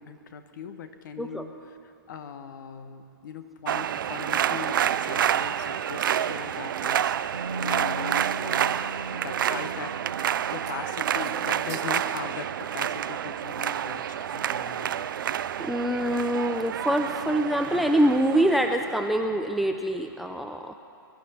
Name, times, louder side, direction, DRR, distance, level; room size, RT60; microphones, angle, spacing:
voice 1, 0.0-1.6 1.8-9.9 10.5-15.2, left 6 dB, 55° left, 9 dB, 1.3 m, -40 dB
sound 1, 3.7-19.1, right 10 dB, 60° right, 0.5 m, -29 dB
Musical instrument, 7.3-15.2 15.5-15.7, right 2 dB, 85° right, 0.9 m, -42 dB
sound 2, 10.7-13.3, right 7 dB, 25° right, 1.3 m, -45 dB
voice 2, 15.6-20.7, right 1 dB, ahead, 5 dB, 0.6 m, -25 dB
23.5 x 11.5 x 4.3 m, 2.4 s
hypercardioid pair, 125°, 12 cm